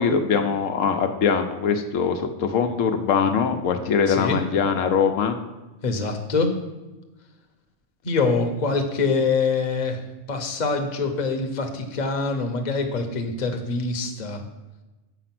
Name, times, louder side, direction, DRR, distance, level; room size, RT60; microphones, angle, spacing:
voice 1, 0.0-5.3, left 6 dB, 85° left, 6 dB, 1.1 m, -22 dB
voice 2, 4.1-4.4 5.8-6.5 8.0-10.0 10.3-14.4, left 4 dB, 40° left, 4 dB, 0.9 m, -24 dB
6.9 x 5.0 x 5.9 m, 1.1 s
omnidirectional pair, 1.3 m